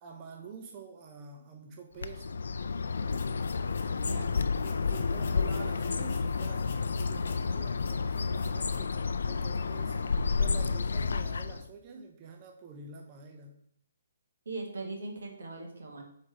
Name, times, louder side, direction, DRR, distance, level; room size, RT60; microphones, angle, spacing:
voice 1, 0.0-2.4 4.1-4.2 4.6-10.0 10.4-13.6, right 5 dB, 20° right, 2 dB, 0.5 m, -47 dB
Bird, 2.0-11.7, left 4 dB, 75° left, 0.4 m, -31 dB
sound 1, 3.1-9.0, left 5 dB, 40° left, 0.8 m, -51 dB
voice 2, 3.9-4.3 14.5-16.0, right 3 dB, 80° right, 1 dB, 1.8 m, -40 dB
5.1 x 4.0 x 4.8 m, 0.70 s
hypercardioid pair, 175°, 0 cm